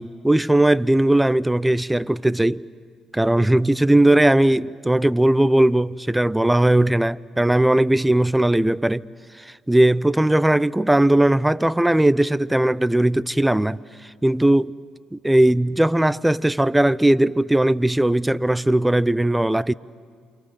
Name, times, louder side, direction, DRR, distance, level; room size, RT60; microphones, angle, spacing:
voice 1, 0.0-2.6 3.1-9.1 9.4-13.8 14.2-14.8 15.1-19.7, right 1 dB, 10° right, 0.6 m, -18 dB
28.5 x 25.0 x 8.0 m
hypercardioid pair, 60°, 0 cm